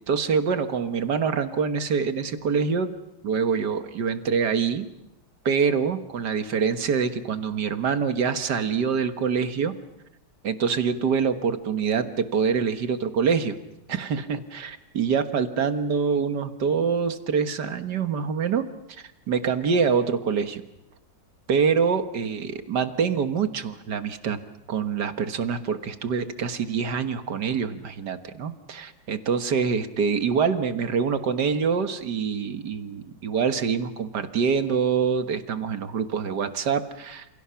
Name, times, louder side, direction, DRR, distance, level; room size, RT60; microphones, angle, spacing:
voice 1, 0.1-3.0 3.2-4.9 5.5-9.8 10.4-13.6 13.9-18.7 19.3-20.6 21.5-24.4 24.7-37.3, right 6 dB, 65° right, 9 dB, 2.0 m, -25 dB
29.0 x 28.5 x 5.8 m, 0.86 s
omnidirectional pair, 2.0 m